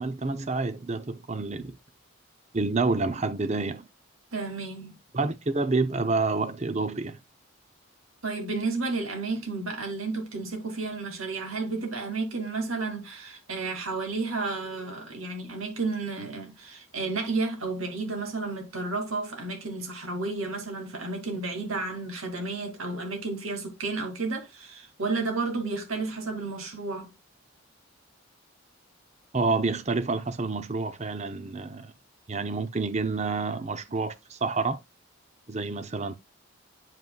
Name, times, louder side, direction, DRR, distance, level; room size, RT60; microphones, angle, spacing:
voice 1, 0.0-1.8 2.5-3.9 5.1-7.2 29.3-31.9 32.3-34.8 35.5-36.1, right 3 dB, 30° right, 0.6 m, -28 dB
voice 2, 4.3-5.0 8.2-27.1, right 3 dB, 80° right, 2.4 m, -32 dB
9.3 x 5.5 x 2.3 m
head